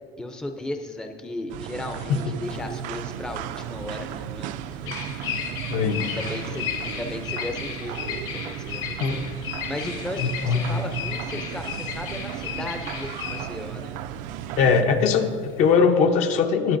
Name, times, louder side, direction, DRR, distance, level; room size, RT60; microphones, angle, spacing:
voice 1, 0.2-4.8 6.0-9.2 9.7-14.0, left 1 dB, 5° left, 5 dB, 0.5 m, -35 dB
sound 1, 1.5-14.8, right 11 dB, 65° right, 0.4 m, -35 dB
Bird vocalization bird call bird song, 2.5-15.7, left 7 dB, 80° left, 2.0 m, -35 dB
voice 2, 5.7-6.1 9.0-9.3 10.2-10.7 14.6-16.8, left 5 dB, 55° left, 6 dB, 0.7 m, -21 dB
19.5 x 8.3 x 2.6 m, 2.1 s
cardioid pair, 160°, 14 cm